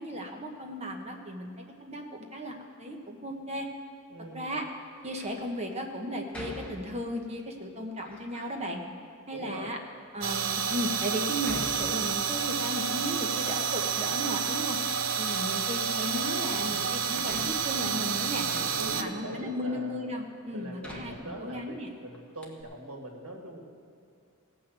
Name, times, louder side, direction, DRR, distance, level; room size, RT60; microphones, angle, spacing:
voice 1, 0.0-1.5 1.8-3.7 4.3-4.7 5.0-8.8 9.3-9.8 10.1-14.8 15.2-18.5 18.8-21.9, equal, 30° right, 3 dB, 1.1 m, -35 dB
voice 2, 4.1-4.6 9.3-9.8 18.4-20.2 20.5-23.6, right 1 dB, 90° right, 0 dB, 2.2 m, -42 dB
Door, 5.0-5.4 6.3-7.3 8.0-8.6 9.4-9.5 10.2-10.3 11.4-12.6 12.9-14.0 14.3-15.1 16.5-16.6 17.2-19.2 19.9-20.0 20.8-21.9 22.1-22.2 22.4-22.6, left 1 dB, 5° left, 1.5 m, -45 dB
sound 1, 10.2-19.0, right 7 dB, 65° right, 0.7 m, -30 dB
17.5 x 6.1 x 7.8 m, 2.4 s
head